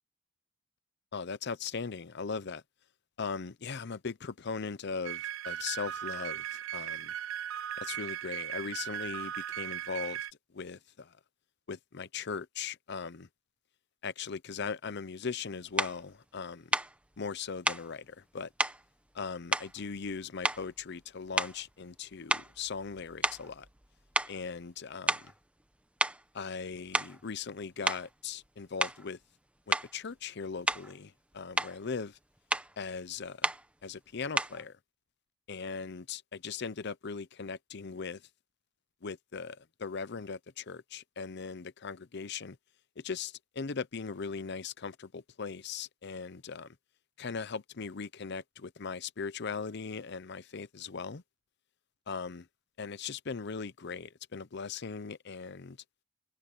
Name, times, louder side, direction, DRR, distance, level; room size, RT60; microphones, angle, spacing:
voice 1, 1.1-2.6 3.2-7.1 7.8-10.2 10.5-11.2 11.7-13.3 14.0-16.7 17.2-18.5 19.1-23.7 24.3-25.3 26.3-29.2 29.7-32.2 32.8-33.5 33.8-34.8 35.5-38.2 39.0-42.6 43.0-46.8 47.2-51.2 52.1-52.5 52.8-55.8, left 5 dB, 60° left, 0.7 m, -39 dB
sound 1, 5.0-10.3, right 11 dB, 85° right, 0.4 m, -38 dB
sound 2, 15.8-16.0 16.7-16.9 17.7-17.9 18.6-18.8 19.5-20.1 20.4-20.8 21.3-21.7 22.3-23.9 24.1-24.4 25.1-25.3 26.0-26.2 26.8-27.2 27.9-28.1 28.8-29.1 29.7-29.9 30.7-31.0 31.3-31.8 32.5-32.7 33.4-33.7 34.4-34.6, right 1 dB, 5° right, 1.0 m, -31 dB
head